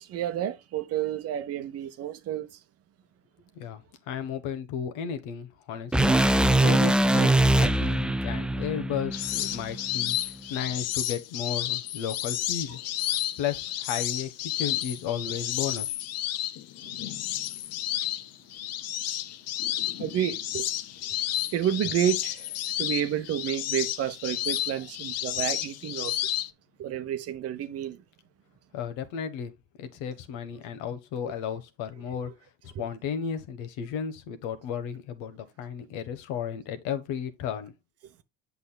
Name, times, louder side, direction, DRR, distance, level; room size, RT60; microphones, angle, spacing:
voice 1, 0.0-2.6 20.0-20.7 21.5-22.5 22.8-26.1 26.8-28.0 32.7-32.9, right 10 dB, 50° right, 0.9 m, -30 dB
voice 2, 3.5-6.1 6.6-12.8 13.4-15.9 28.7-29.5 29.8-32.3 32.6-37.7, left 8 dB, 70° left, 1.2 m, -34 dB
sound 1, 5.9-10.1, right 1 dB, 5° right, 0.4 m, -23 dB
sound 2, 9.1-26.5, left 13 dB, 55° left, 0.7 m, -31 dB
8.2 x 6.1 x 2.2 m
hypercardioid pair, 80°, 31 cm